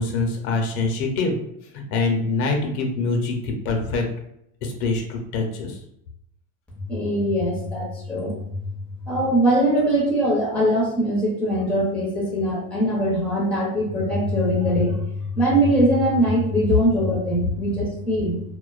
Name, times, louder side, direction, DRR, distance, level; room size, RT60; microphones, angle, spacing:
voice 1, 0.0-1.4 1.7-4.0 4.6-5.8, left 3 dB, 75° left, 2 dB, 0.7 m, -24 dB
voice 2, 6.9-8.3 9.1-15.0 15.3-18.4, equal, 5° left, -6 dB, 0.7 m, -21 dB
2.4 x 2.2 x 2.4 m, 0.74 s
supercardioid pair, 140°, 45 cm